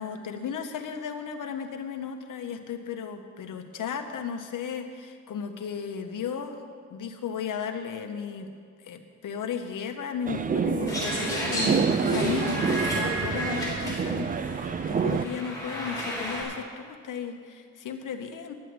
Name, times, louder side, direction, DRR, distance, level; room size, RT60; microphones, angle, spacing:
voice 1, 0.0-6.6 6.9-8.5 8.8-18.5, left 7 dB, 80° left, 6 dB, 1.0 m, -35 dB
sound 1, 10.3-15.3, right 6 dB, 30° right, 0.3 m, -27 dB
sound 2, 10.9-16.4, equal, 10° left, 3.7 m, -33 dB
10.5 x 8.1 x 7.8 m, 2.1 s
wide cardioid pair, 160°, 31 cm